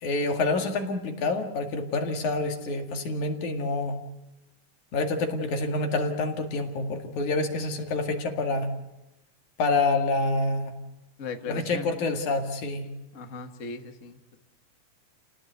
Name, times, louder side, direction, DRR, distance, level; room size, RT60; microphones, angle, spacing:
voice 1, 0.0-4.0 4.9-8.7 9.6-10.8 11.5-12.9, left 3 dB, 70° left, 4 dB, 3.5 m, -27 dB
voice 2, 11.2-11.9 13.1-14.1, left 4 dB, 35° left, 6 dB, 1.4 m, -37 dB
29.5 x 18.0 x 8.1 m, 0.97 s
omnidirectional pair, 3.6 m